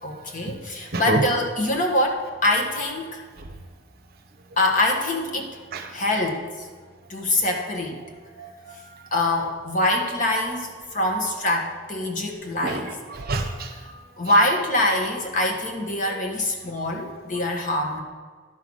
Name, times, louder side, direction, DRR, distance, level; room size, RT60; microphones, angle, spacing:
voice 1, 0.0-3.2 4.6-5.5 5.9-6.4 7.1-8.0 9.1-12.9 14.2-18.0, left 1 dB, 40° left, 1 dB, 1.5 m, -24 dB
voice 2, 0.9-1.2 5.7-5.9 8.4-8.7 12.6-13.7, right 2 dB, 50° right, 4 dB, 0.9 m, -27 dB
11.5 x 5.8 x 6.3 m, 1.5 s
head